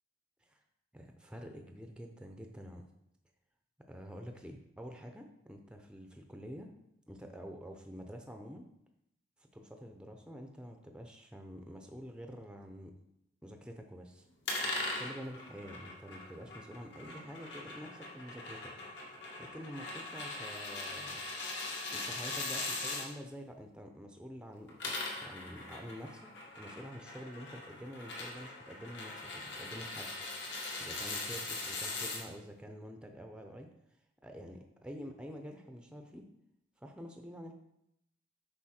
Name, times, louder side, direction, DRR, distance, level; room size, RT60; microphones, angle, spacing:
voice 1, 0.9-2.8 3.9-6.7 7.1-8.7 9.5-12.9 13.4-14.2 15.0-18.7 19.4-21.2 21.9-24.9 25.2-30.1 30.8-33.7 34.2-36.3 36.8-37.5, equal, 5° right, 4 dB, 0.6 m, -47 dB
sound 1, 14.4-23.0 24.6-32.2, left 2 dB, 60° left, 2.0 m, -40 dB
8.6 x 5.5 x 4.4 m, 0.79 s
head